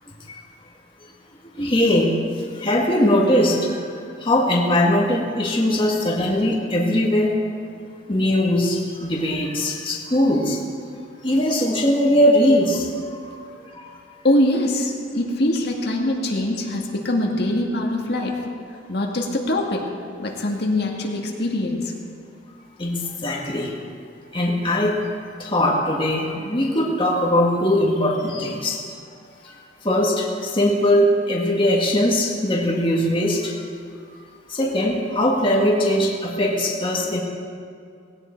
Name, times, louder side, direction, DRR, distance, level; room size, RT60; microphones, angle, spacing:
voice 1, 1.6-2.1 2.6-3.8 4.2-7.3 8.1-10.6 11.2-12.9 13.8-13.9 15.1-15.3 22.8-23.7 24.3-24.9 25.4-28.8 29.8-33.5 34.5-37.2, left 1 dB, 25° left, -2 dB, 1.9 m, -20 dB
voice 2, 14.2-18.3 18.9-19.8 20.2-21.9 23.3-23.5 29.5-29.6, left 1 dB, 55° left, 0 dB, 1.9 m, -23 dB
18.5 x 17.0 x 4.6 m, 2.4 s
head